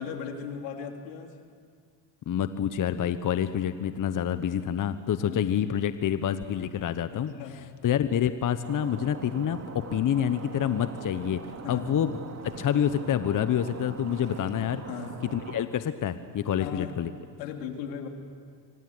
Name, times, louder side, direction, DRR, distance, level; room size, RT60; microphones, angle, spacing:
voice 1, 0.0-1.4 5.2-5.4 7.1-7.7 11.6-11.9 14.8-15.2 16.6-17.0 17.4-18.1, left 7 dB, 85° left, 4 dB, 3.1 m, -37 dB
voice 2, 2.3-11.4 11.7-12.2 12.4-14.8 15.3-17.1, left 9 dB, 40° left, 11 dB, 1.2 m, -27 dB
Stream, 8.6-15.7, right 5 dB, 30° right, 2.8 m, -42 dB
26.5 x 25.0 x 8.1 m, 2.1 s
hypercardioid pair, 80°, 48 cm